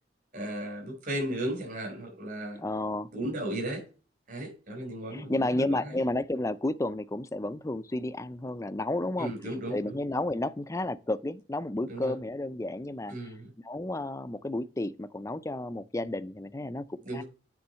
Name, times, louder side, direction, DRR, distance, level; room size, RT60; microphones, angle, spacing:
voice 1, 0.3-2.6 3.1-3.8 4.3-6.0 9.2-10.0 11.9-12.2 13.1-13.5 17.0-17.2, right 1 dB, 50° right, 5.3 m, -35 dB
voice 2, 2.6-3.1 5.1-9.3 9.7-13.1 13.6-16.9 17.1-17.2, left 2 dB, 15° left, 0.5 m, -31 dB
9.7 x 3.9 x 5.6 m
head